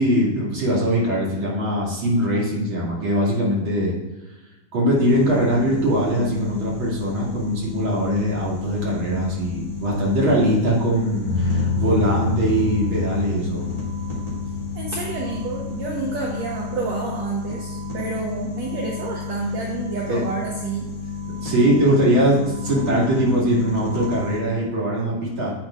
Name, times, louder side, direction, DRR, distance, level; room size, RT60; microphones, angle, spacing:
voice 1, 0.0-3.9 4.7-13.6 20.1-20.2 21.3-25.5, equal, 35° right, -5 dB, 2.7 m, -21 dB
sound 1, 4.9-24.4, left 5 dB, 15° left, 1.7 m, -32 dB
sound 2, 11.2-16.8, left 4 dB, 60° left, 2.3 m, -28 dB
voice 2, 14.7-20.9, right 3 dB, 70° right, -2 dB, 1.6 m, -29 dB
10.0 x 8.3 x 2.5 m, 1.1 s
omnidirectional pair, 4.3 m